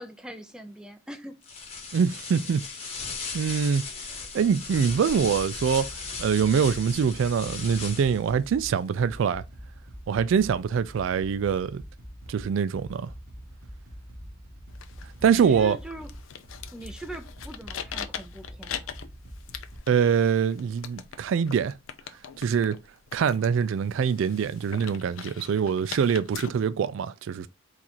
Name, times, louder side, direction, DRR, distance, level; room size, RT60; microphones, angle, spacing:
voice 1, 0.0-1.4 15.3-16.1 16.7-18.9, right 1 dB, 5° right, 0.5 m, -41 dB
sound 1, 1.4-8.3, left 4 dB, 30° left, 1.0 m, -37 dB
voice 2, 1.9-3.0 3.3-3.8 4.3-5.9 6.2-9.4 10.1-11.8 12.3-13.1 15.2-15.8 19.9-21.8 22.4-22.8 23.1-27.5, right 7 dB, 70° right, 0.3 m, -24 dB
sound 2, 5.1-19.8, equal, 45° right, 1.4 m, -44 dB
sound 3, 14.7-26.5, left 8 dB, 80° left, 0.5 m, -42 dB
4.0 x 2.5 x 4.3 m
head